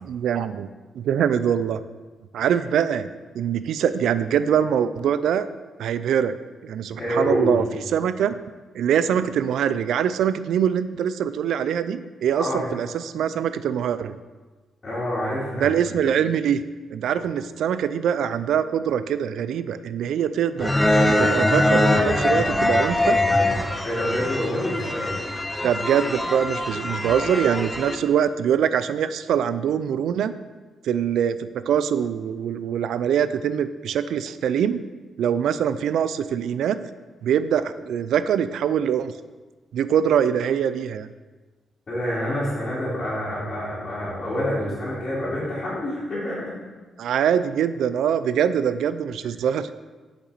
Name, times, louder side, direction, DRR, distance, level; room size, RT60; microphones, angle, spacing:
voice 1, 0.0-0.7 1.0-1.8 2.3-3.1 3.3-5.5 5.8-6.3 6.6-7.6 7.9-8.3 8.7-14.1 15.6-16.6 16.9-20.7 21.2-23.2 25.6-30.3 30.8-34.8 35.2-36.8 37.2-39.1 39.7-41.1 47.0-49.7, right 8 dB, 80° right, 13 dB, 0.4 m, -23 dB
voice 2, 6.9-7.6 9.0-9.1 12.3-12.7 14.8-15.7 17.1-17.2 23.8-25.3 41.9-46.6, equal, 30° left, -12 dB, 2.8 m, -27 dB
sound 1, 20.6-28.0, left 1 dB, 10° left, 0.6 m, -22 dB
8.2 x 6.0 x 4.1 m, 1.3 s
wide cardioid pair, 155°, 0 cm